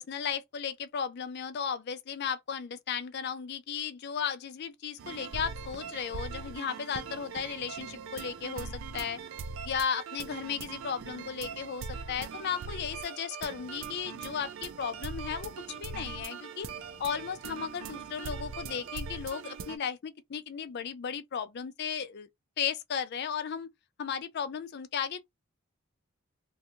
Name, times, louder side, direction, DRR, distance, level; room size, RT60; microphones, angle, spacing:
voice 1, 0.0-9.2 9.6-16.7 17.0-22.3 22.6-23.7 24.0-25.3, left 7 dB, 55° left, 0.4 m, -35 dB
sound 1, 5.0-19.8, right 5 dB, 65° right, 0.4 m, -41 dB
2.6 x 2.3 x 2.9 m
head